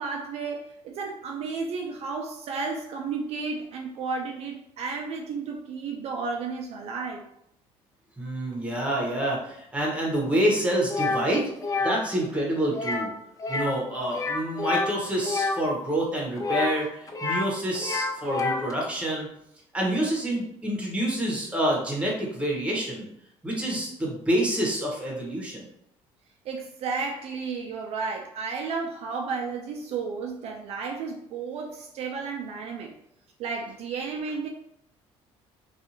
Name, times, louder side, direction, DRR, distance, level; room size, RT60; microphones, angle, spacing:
voice 1, 0.0-7.2 26.4-32.9 33.4-34.5, right 4 dB, 60° right, 1 dB, 0.4 m, -33 dB
voice 2, 8.2-11.4 11.8-13.1 13.5-19.3 19.7-23.1 23.4-25.7, right 1 dB, 10° right, -2 dB, 0.9 m, -27 dB
sound 1, 10.9-11.2 11.6-12.0 12.7-13.1 13.4-13.8 14.1-15.6 16.4-17.5 17.8-18.7, left 3 dB, 30° left, 0.4 m, -28 dB
2.6 x 2.4 x 2.7 m, 0.75 s
cardioid pair, 95°, 12 cm